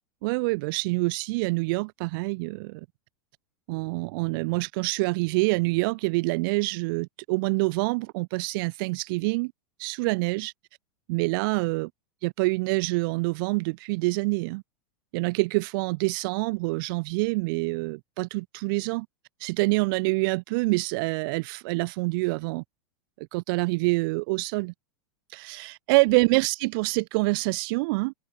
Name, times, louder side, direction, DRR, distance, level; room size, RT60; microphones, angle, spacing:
voice 1, 0.2-2.9 3.7-9.5 9.8-10.5 11.1-11.9 12.2-14.6 15.1-19.1 19.4-22.6 23.2-24.7 25.3-28.1, right 26 dB, 55° right, 1.8 m, -26 dB
supercardioid pair, 130°, 14 cm